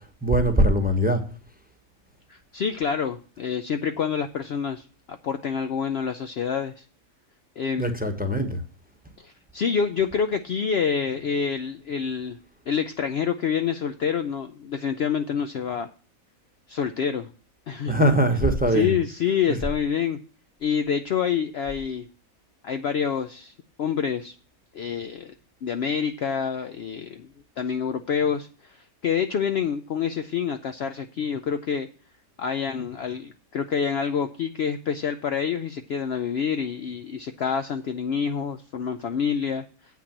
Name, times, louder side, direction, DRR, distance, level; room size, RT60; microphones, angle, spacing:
voice 1, 0.2-1.2 7.8-8.6 17.9-18.9, right 1 dB, 5° right, 0.9 m, -21 dB
voice 2, 2.3-6.8 7.6-8.0 9.2-12.4 12.7-15.9 16.7-17.3 17.7-18.1 18.7-20.2 20.6-22.1 22.6-24.3 24.7-25.3 25.6-27.3 27.6-31.9 32.4-39.6, left 7 dB, 65° left, 0.7 m, -27 dB
8.4 x 5.9 x 7.3 m
omnidirectional pair, 1.5 m